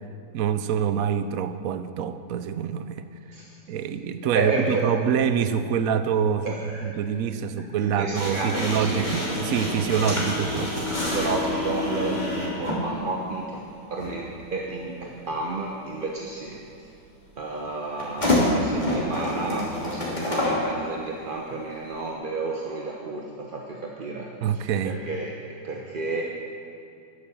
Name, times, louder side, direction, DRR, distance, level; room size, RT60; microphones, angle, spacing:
voice 1, 0.3-3.0 3.7-6.5 6.8-10.9 24.4-25.0, right 8 dB, 65° right, 11 dB, 1.0 m, -26 dB
voice 2, 4.3-4.9 6.4-7.0 7.6-9.1 11.1-13.6 13.9-16.9 17.4-25.4 25.6-26.2, right 3 dB, 35° right, -1 dB, 0.9 m, -31 dB
sound 1, 8.1-12.9 14.0-14.1 18.0-20.6, left 1 dB, 25° left, 2.9 m, -27 dB
12.0 x 10.0 x 7.3 m, 2.6 s
omnidirectional pair, 1.9 m